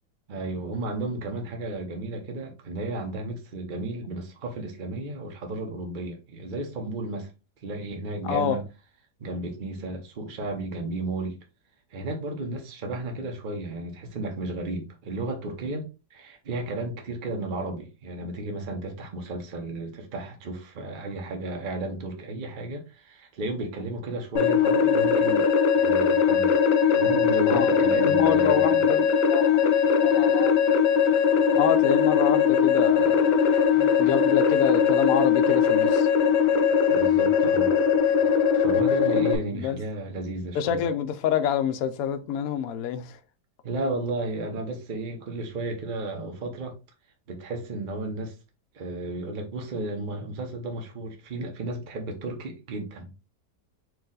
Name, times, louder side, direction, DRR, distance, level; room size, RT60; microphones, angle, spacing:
voice 1, 0.3-7.3 7.6-8.6 9.2-11.4 11.9-25.5 25.7-26.5 26.8-28.8 33.8-33.9 36.9-37.7 38.5-40.8 43.6-46.7 47.3-48.3 48.7-53.1, right 2 dB, 35° right, 0.9 m, -33 dB
voice 2, 8.2-8.6 27.5-29.6 30.0-30.6 31.6-33.2 34.0-36.1 39.5-39.8 40.5-43.2, left 9 dB, 65° left, 0.9 m, -27 dB
sound 1, 24.4-39.4, left 7 dB, 90° left, 1.4 m, -20 dB
4.6 x 2.6 x 3.8 m
omnidirectional pair, 1.8 m